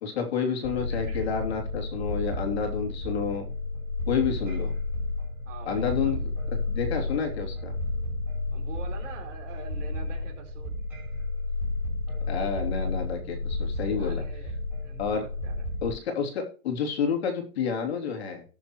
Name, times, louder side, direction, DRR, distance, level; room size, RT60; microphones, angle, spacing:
voice 1, 0.0-3.5 4.1-4.7 5.7-6.2 6.7-7.7 12.3-14.2 15.0-15.2 15.8-18.4, left 6 dB, 45° left, 3 dB, 3.1 m, -29 dB
sound 1, 0.6-15.9, left 2 dB, 5° right, 4.9 m, -32 dB
voice 2, 0.9-1.3 5.5-6.2 8.5-10.7 14.0-14.5 14.8-15.6, right 5 dB, 50° right, 3 dB, 4.6 m, -45 dB
18.5 x 7.0 x 3.1 m, 0.40 s
hypercardioid pair, 165°, 45 cm